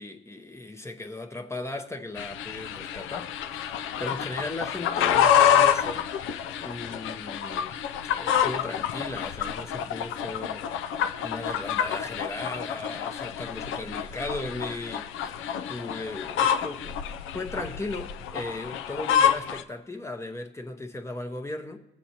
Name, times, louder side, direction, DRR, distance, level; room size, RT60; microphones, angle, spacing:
voice 1, 0.0-6.1 6.5-10.9 11.2-15.4 15.7-17.1 17.3-21.8, left 2 dB, 15° left, 0.8 m, -37 dB
sound 1, 2.2-19.6, left 9 dB, 80° left, 0.5 m, -27 dB
18.0 x 7.3 x 2.8 m
cardioid pair, 90°, 20 cm